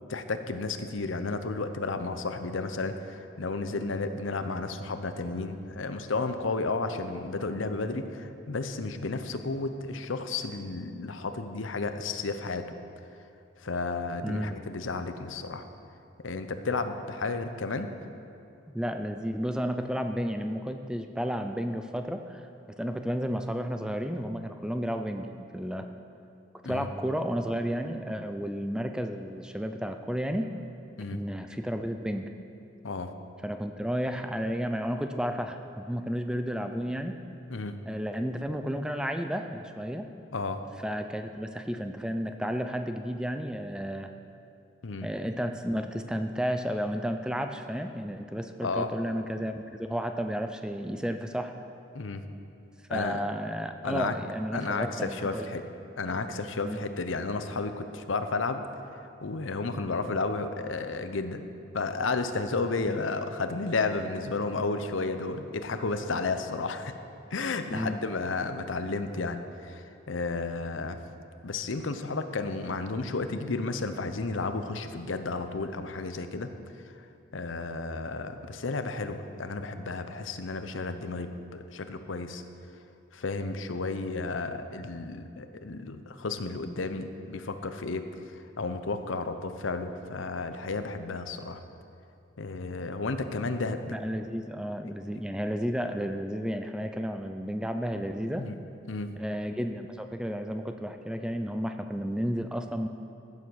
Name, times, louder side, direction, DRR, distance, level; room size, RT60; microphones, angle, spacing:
voice 1, 0.1-12.7 13.6-15.7 16.2-17.9 26.6-26.9 31.0-31.2 32.8-33.1 37.5-37.8 40.3-40.6 44.8-45.1 48.6-48.9 51.9-52.2 52.9-53.2 53.8-54.1 54.5-55.6 56.0-58.6 59.2-61.4 61.7-66.9 67.3-71.0 71.4-76.5 76.8-76.9 77.3-82.4 83.1-91.6 92.4-93.9 98.4-98.6 98.9-99.1, left 3 dB, 85° left, 9 dB, 0.8 m, -32 dB
voice 2, 14.2-14.6 17.8-17.9 18.7-22.4 22.8-25.9 26.6-30.5 31.1-32.3 33.4-37.2 37.9-40.1 40.8-44.1 45.0-51.5 52.9-55.5 56.6-56.9 62.9-63.0 67.7-68.0 93.9-98.4 99.2-102.9, equal, 5° right, 6 dB, 0.4 m, -32 dB
14.5 x 7.4 x 6.3 m, 2.7 s
head